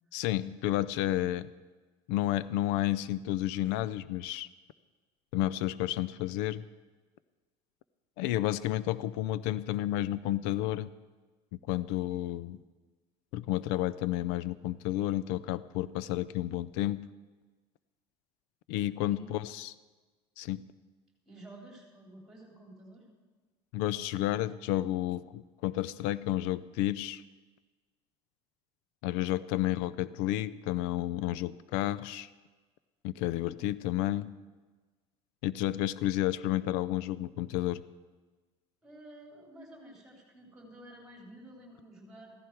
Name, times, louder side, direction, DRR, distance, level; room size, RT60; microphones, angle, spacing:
voice 1, 0.1-1.5 2.1-4.5 5.3-6.6 8.2-10.9 11.7-12.6 13.3-17.1 18.7-19.7 20.4-20.7 23.7-27.2 29.0-32.3 33.0-34.4 35.4-37.8, left 14 dB, 90° left, 17 dB, 0.4 m, -31 dB
voice 2, 19.0-19.3 21.3-23.1 38.8-42.3, right 1 dB, 5° right, -1 dB, 3.2 m, -51 dB
15.0 x 14.5 x 4.6 m, 1.3 s
cardioid pair, 170°, 12 cm